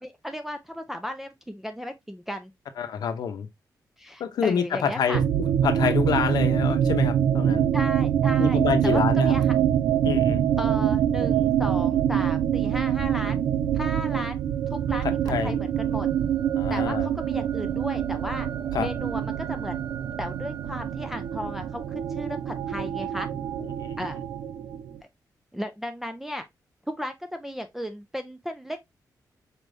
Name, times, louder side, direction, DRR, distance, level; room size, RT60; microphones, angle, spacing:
voice 1, 0.0-2.5 4.0-5.2 7.7-9.5 10.6-13.4 13.7-15.1 15.4-16.1 16.7-18.5 18.8-19.8 20.2-23.3 24.0-24.2 25.5-26.4 26.9-28.9, equal, 5° right, 0.3 m, -35 dB
voice 2, 2.8-3.5 4.2-7.7 8.4-9.4 10.0-10.4 15.0-15.5 16.5-17.1 18.7-18.9 23.8-24.0, left 7 dB, 75° left, 0.7 m, -27 dB
sound 1, 5.1-25.0, right 9 dB, 85° right, 0.4 m, -25 dB
4.3 x 3.4 x 2.5 m
wide cardioid pair, 160°, 7 cm